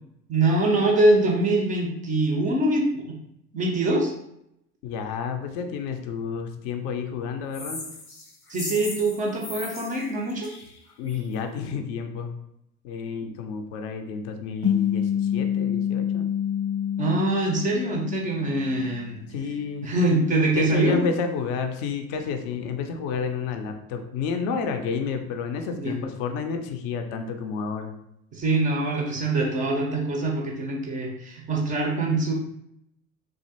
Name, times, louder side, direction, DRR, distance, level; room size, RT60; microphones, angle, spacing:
voice 1, 0.3-3.2 3.5-4.1 8.5-10.5 17.0-19.2 19.8-21.1 25.8-25.9 28.3-32.3, right 2 dB, 20° right, 0 dB, 0.4 m, -24 dB
voice 2, 4.8-7.9 11.0-12.3 12.8-16.3 19.3-19.9 20.6-28.0, left 5 dB, 40° left, 5 dB, 0.4 m, -30 dB
sound 1, 7.5-11.3, left 3 dB, 90° left, 0.6 m, -38 dB
sound 2, 14.6-19.3, left 9 dB, 90° right, 0.6 m, -27 dB
3.1 x 2.4 x 2.8 m, 0.79 s
figure-of-eight pair, 70°, 45 cm